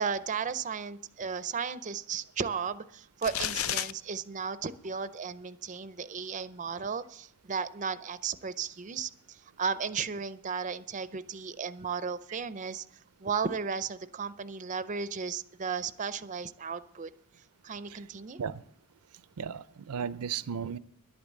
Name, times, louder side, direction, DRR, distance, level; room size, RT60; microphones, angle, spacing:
voice 1, 0.0-12.9 13.2-17.1 17.6-18.4 20.2-20.3, right 6 dB, 35° right, 13 dB, 0.5 m, -35 dB
sound 1, 3.2-3.9, left 10 dB, 65° left, 0.4 m, -31 dB
voice 2, 19.4-20.8, right 7 dB, 85° right, 16 dB, 0.5 m, -35 dB
11.0 x 8.7 x 7.3 m, 0.64 s
head